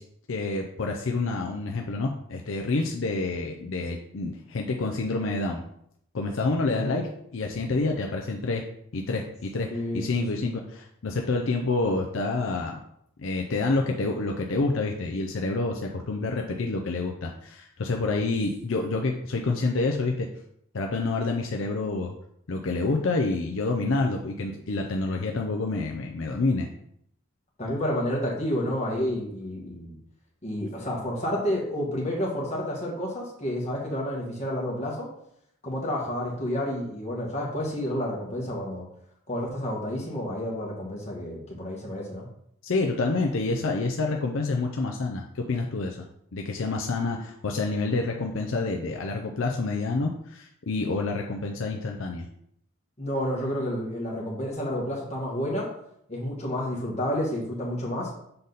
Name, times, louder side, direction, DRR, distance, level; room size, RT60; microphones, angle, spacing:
voice 1, 0.3-5.6 6.1-8.6 8.9-9.7 9.9-12.8 13.2-20.3 20.7-22.1 22.5-26.7 42.6-46.1 46.3-52.3, left 3 dB, 70° left, 2 dB, 0.5 m, -28 dB
voice 2, 9.7-10.4 27.6-30.0 30.4-35.1 35.6-38.8 39.3-42.3 53.0-55.7 56.1-58.1, equal, 35° left, -3 dB, 1.8 m, -30 dB
6.7 x 4.0 x 4.0 m, 0.72 s
head